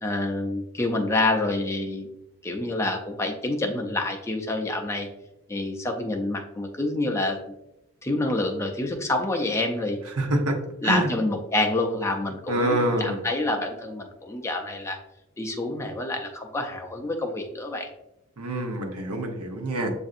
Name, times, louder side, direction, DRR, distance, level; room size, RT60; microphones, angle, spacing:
voice 1, 0.0-2.1 2.4-5.1 5.5-7.4 8.0-10.0 10.8-15.0 15.4-17.9, left 2 dB, 10° left, 2 dB, 0.4 m, -27 dB
voice 2, 10.2-10.6 10.8-11.1 12.5-13.2 18.4-19.9, right 1 dB, 80° right, 3 dB, 0.8 m, -25 dB
7.4 x 2.6 x 2.5 m, 0.87 s
head